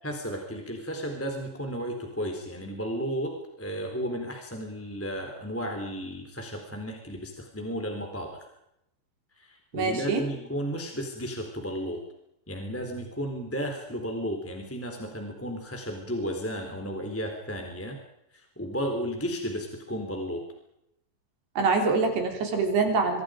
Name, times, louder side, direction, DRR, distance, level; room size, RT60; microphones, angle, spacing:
voice 1, 0.0-8.4 9.4-12.0 12.5-18.0 18.3-20.4, equal, 5° left, 3 dB, 2.8 m, -33 dB
voice 2, 9.7-10.2 21.6-23.2, right 4 dB, 60° right, 4 dB, 5.5 m, -25 dB
26.0 x 25.0 x 5.1 m, 0.81 s
omnidirectional pair, 5.5 m